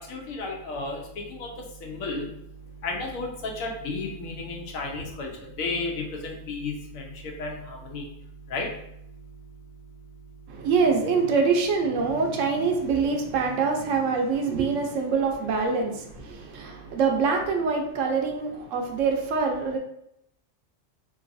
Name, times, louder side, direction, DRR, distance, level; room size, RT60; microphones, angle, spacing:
voice 1, 0.1-1.0 1.3-1.5 1.8-2.3 2.8-7.1 7.4-8.0 8.5-8.7, left 3 dB, 85° left, 1 dB, 1.1 m, -32 dB
voice 2, 10.5-19.8, right 5 dB, 75° right, 2 dB, 0.9 m, -25 dB
3.0 x 2.6 x 2.5 m, 0.78 s
omnidirectional pair, 1.4 m